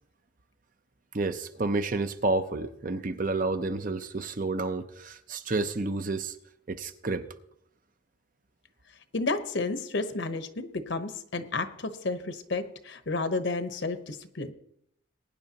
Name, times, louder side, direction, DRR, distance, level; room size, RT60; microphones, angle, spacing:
voice 1, 1.1-6.4 6.7-7.3, right 3 dB, 40° right, 9 dB, 0.6 m, -30 dB
voice 2, 9.1-14.5, left 3 dB, 60° left, 9 dB, 1.0 m, -31 dB
21.0 x 10.0 x 2.9 m, 0.75 s
head